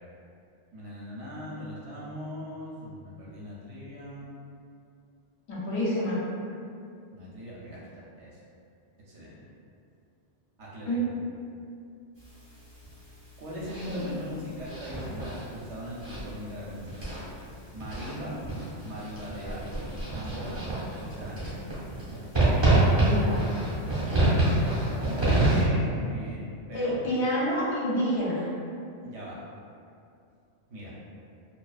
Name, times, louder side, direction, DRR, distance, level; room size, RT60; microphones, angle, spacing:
voice 1, 0.7-4.3 7.1-7.8 8.2-8.4 9.1-9.4 10.6-11.1 13.4-17.0 17.7-18.4 18.8-19.8 20.1-20.6 20.9-21.6 25.0-26.9 29.0-29.4 30.7-30.9, equal, 70° right, -6 dB, 0.9 m, -40 dB
voice 2, 5.5-6.2 10.9-11.0 13.9-14.1 22.8-23.4 26.7-28.5, equal, 70° left, -7 dB, 0.9 m, -28 dB
sound 1, 12.2-25.6, right 2 dB, 30° right, 0.6 m, -28 dB
2.3 x 2.3 x 2.3 m, 2.4 s
omnidirectional pair, 1.2 m